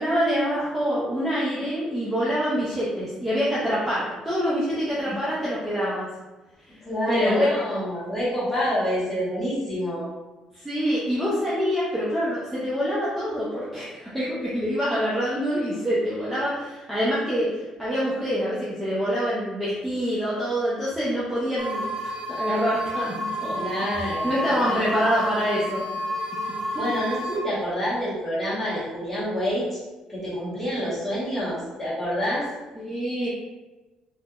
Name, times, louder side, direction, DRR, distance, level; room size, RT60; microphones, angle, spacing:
voice 1, 0.0-6.1 7.1-7.6 10.6-21.9 22.3-23.6 23.9-25.8 32.8-33.3, equal, 5° right, -8 dB, 0.5 m, -26 dB
voice 2, 6.8-10.1 23.5-24.8 26.8-29.8 30.1-32.5, equal, 10° left, -8 dB, 1.1 m, -27 dB
sound 1, 21.6-27.4, equal, 65° right, 0.7 m, -30 dB
3.1 x 2.9 x 2.3 m, 1.1 s
cardioid pair, 160°, 2 cm